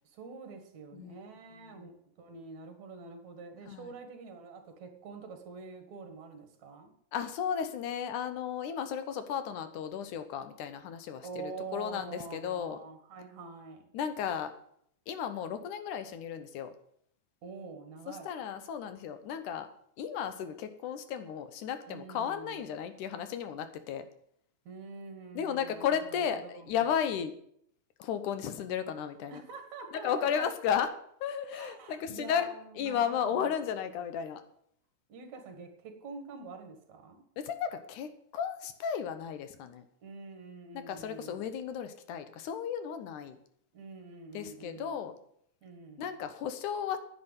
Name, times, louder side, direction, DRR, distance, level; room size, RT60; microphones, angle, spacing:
voice 1, 0.0-6.9 11.2-13.9 17.4-18.3 21.8-22.6 24.7-26.8 29.3-30.5 31.5-33.4 35.1-37.2 40.0-41.5 43.7-45.1 45.6-46.1, right 4 dB, 65° right, 6 dB, 2.9 m, -46 dB
voice 2, 7.1-12.8 13.9-14.5 15.1-16.7 18.1-19.7 20.0-24.1 25.3-27.3 28.0-29.4 30.0-30.9 31.2-32.5 32.8-34.4 37.4-39.9 40.7-43.4 44.3-45.2 46.0-47.0, left 8 dB, 80° left, 10 dB, 2.5 m, -34 dB
9.9 x 9.4 x 7.8 m, 0.68 s
omnidirectional pair, 3.6 m